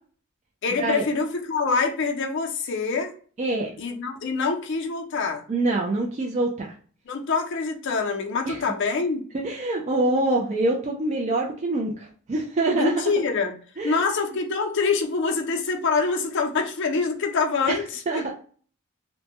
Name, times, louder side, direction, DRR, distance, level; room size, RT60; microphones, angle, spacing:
voice 1, 0.6-3.1 3.8-5.4 7.1-9.2 12.7-13.5 13.8-18.3, left 4 dB, 55° left, 4 dB, 0.5 m, -25 dB
voice 2, 3.4-3.7 5.5-6.7 8.5-8.6 9.3-13.1 13.8-14.1 17.7-17.8 18.1-18.3, right 2 dB, 35° right, -1 dB, 0.3 m, -25 dB
2.2 x 2.0 x 2.8 m, 0.43 s
head